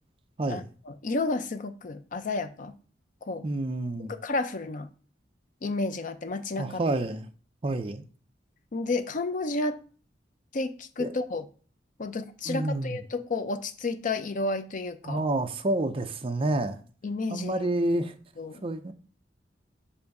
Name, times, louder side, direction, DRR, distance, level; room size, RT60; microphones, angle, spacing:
voice 1, 0.5-2.7 3.2-3.4 4.0-4.9 5.6-6.8 8.7-9.8 10.5-11.4 12.0-15.2 17.0-17.7 18.4-18.6, left 3 dB, 45° left, 0.5 m, -31 dB
voice 2, 3.4-4.2 6.6-7.3 7.6-8.0 11.0-11.1 12.5-13.0 15.0-16.8 17.3-18.1 18.6-18.9, right 2 dB, 30° right, 0.5 m, -28 dB
7.0 x 2.6 x 5.2 m
head